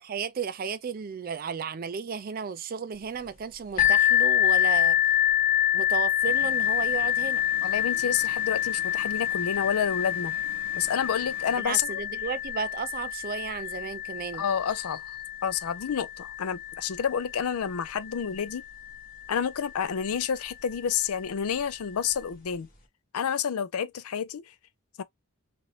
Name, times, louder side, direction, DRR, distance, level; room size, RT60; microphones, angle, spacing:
voice 1, 0.0-5.0 5.7-7.5 11.6-14.4, right 6 dB, 40° right, 0.4 m, -34 dB
sound 1, 3.8-19.3 20.1-20.2 20.7-20.8, left 12 dB, 40° left, 1.2 m, -27 dB
sound 2, 6.2-11.6, left 1 dB, 10° right, 1.1 m, -49 dB
voice 2, 7.6-10.4 10.8-12.0 14.4-15.0 15.4-18.6 19.3-22.7 23.1-24.4 25.0-25.1, left 7 dB, 90° left, 0.5 m, -29 dB
3.0 x 2.5 x 3.1 m
head